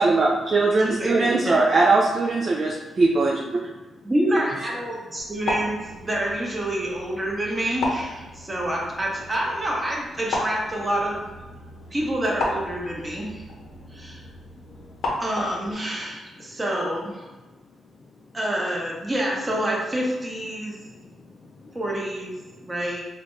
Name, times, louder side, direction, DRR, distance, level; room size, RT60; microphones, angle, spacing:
voice 1, 0.0-3.4, right 3 dB, 45° right, -1 dB, 0.4 m, -20 dB
voice 2, 0.8-1.6 4.0-11.3 11.9-13.4 13.9-14.2 15.2-17.2 18.3-20.8 21.7-22.3 22.6-23.0, right 1 dB, 20° right, -3 dB, 1.0 m, -27 dB
sound 1, 5.2-15.7, left 2 dB, 80° left, 0.7 m, -34 dB
voice 3, 13.4-14.2 14.7-15.0 16.4-16.5 18.0-18.1 20.6-21.8 22.5-22.7, left 3 dB, 45° left, -1 dB, 0.4 m, -51 dB
3.8 x 2.2 x 3.1 m, 1.1 s
cardioid pair, 80°, 0 cm